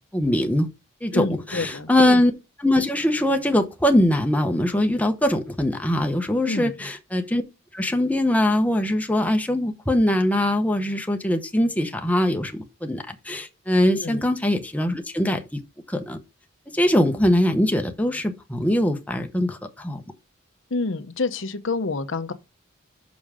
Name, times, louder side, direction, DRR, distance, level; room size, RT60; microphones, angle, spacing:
voice 1, 0.1-0.7 1.0-2.3 2.6-7.4 7.7-15.6 15.9-16.2 16.7-20.0, left 1 dB, 5° left, 0.8 m, -22 dB
voice 2, 1.1-1.9 6.5-6.7 14.0-14.2 20.7-22.3, left 3 dB, 65° left, 0.8 m, -27 dB
6.1 x 5.4 x 5.0 m
head